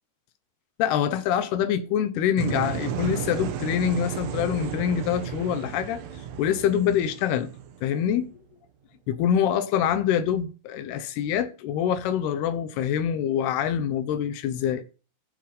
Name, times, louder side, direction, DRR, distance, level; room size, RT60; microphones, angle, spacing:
voice 1, 0.8-6.0 6.4-7.5 7.8-8.3 9.1-14.8, left 9 dB, 75° left, 3.1 m, -25 dB
sound 1, 2.4-8.2, right 8 dB, 85° right, 3.6 m, -33 dB
14.0 x 8.4 x 5.4 m
omnidirectional pair, 4.7 m